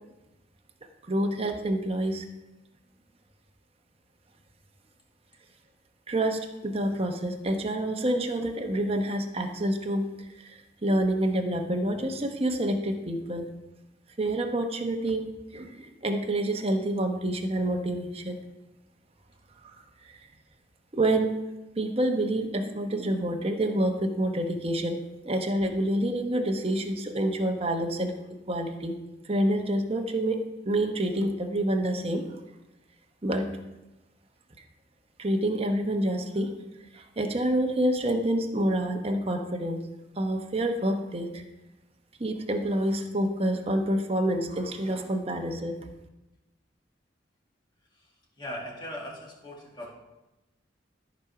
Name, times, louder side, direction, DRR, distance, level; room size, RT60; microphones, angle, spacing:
voice 1, 1.1-2.3 6.1-10.1 10.4-13.5 14.2-18.4 20.1-20.2 20.9-21.3 21.8-25.0 25.2-28.2 28.5-29.0 29.2-32.2 33.2-33.5 35.2-36.5 36.9-39.8 40.2-41.4 42.2-45.8, right 1 dB, 30° right, 4 dB, 0.9 m, -27 dB
voice 2, 47.9-49.9, equal, 25° left, -2 dB, 1.9 m, -40 dB
13.0 x 5.1 x 5.8 m, 1.0 s
head